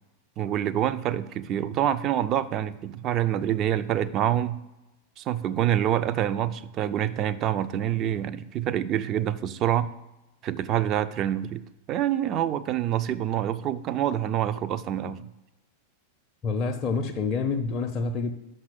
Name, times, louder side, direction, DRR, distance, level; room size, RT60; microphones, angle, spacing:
voice 1, 0.4-4.6 5.2-9.9 10.4-11.6 11.9-15.3, right 11 dB, 35° right, 0.4 m, -26 dB
voice 2, 16.4-18.3, left 4 dB, 30° left, 0.5 m, -27 dB
5.9 x 5.4 x 5.8 m
figure-of-eight pair, 90°, 0 cm